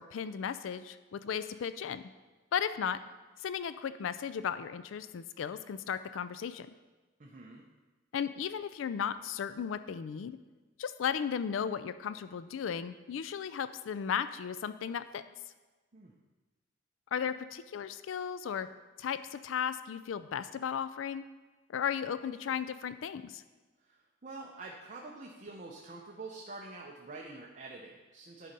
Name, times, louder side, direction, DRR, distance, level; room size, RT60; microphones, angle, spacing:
voice 1, 0.0-2.1 2.5-3.0 3.4-6.7 8.1-10.4 10.8-15.2 17.1-18.7 19.0-21.2 21.7-23.4, left 7 dB, 90° left, 13 dB, 0.4 m, -35 dB
voice 2, 7.2-7.7 15.9-16.1 23.8-28.5, right 3 dB, 40° right, -1 dB, 0.8 m, -46 dB
11.0 x 4.2 x 5.3 m, 1.2 s
head